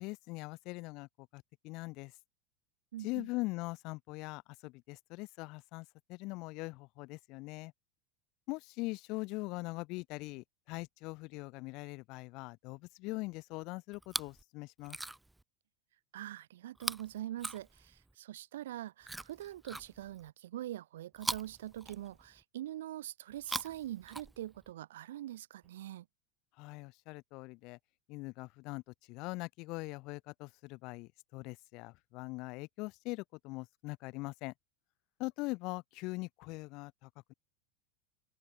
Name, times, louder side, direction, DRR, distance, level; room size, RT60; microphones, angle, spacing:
voice 1, 0.0-2.1 3.0-7.7 8.5-15.0 26.6-27.8 28.1-28.8 29.1-34.5 35.2-37.3, left 24 dB, 50° left, 1.2 m, -42 dB
voice 2, 2.9-3.3 16.1-26.1, right 13 dB, 85° right, 0.5 m, -43 dB
Chewing mastication, 13.9-14.4 14.8-15.4 16.8-18.1 19.0-20.3 21.2-22.4 23.3-24.7 25.6-25.7, right 2 dB, 5° right, 0.5 m, -42 dB
open air
supercardioid pair, 130°, 0 cm